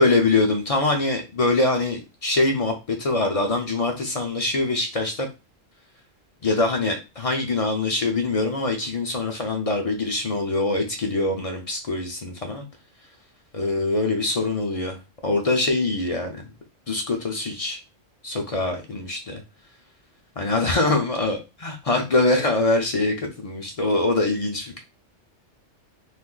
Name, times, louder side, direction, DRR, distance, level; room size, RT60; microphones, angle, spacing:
voice 1, 0.0-5.3 6.4-12.6 13.5-15.0 15.2-16.4 16.9-17.8 18.2-19.4 20.4-24.8, left 2 dB, 45° left, 3 dB, 0.5 m, -23 dB
2.5 x 2.5 x 3.7 m, 0.27 s
omnidirectional pair, 1.2 m